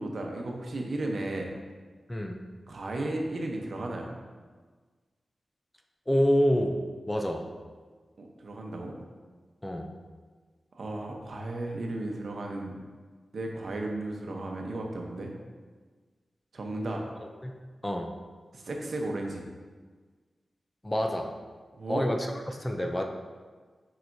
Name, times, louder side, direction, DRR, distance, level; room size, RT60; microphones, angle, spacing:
voice 1, 0.0-1.5 2.7-4.1 8.2-9.0 10.7-12.7 13.3-15.3 16.5-17.0 18.5-19.4 21.8-22.0, right 2 dB, 60° right, 1 dB, 0.8 m, -34 dB
voice 2, 2.1-2.4 6.1-6.8 7.1-7.4 9.6-9.9 17.4-17.5 17.8-18.1 20.8-21.3 21.9-23.0, equal, 15° left, 3 dB, 0.5 m, -27 dB
7.5 x 4.9 x 2.7 m, 1.4 s
wide cardioid pair, 125°, 0 cm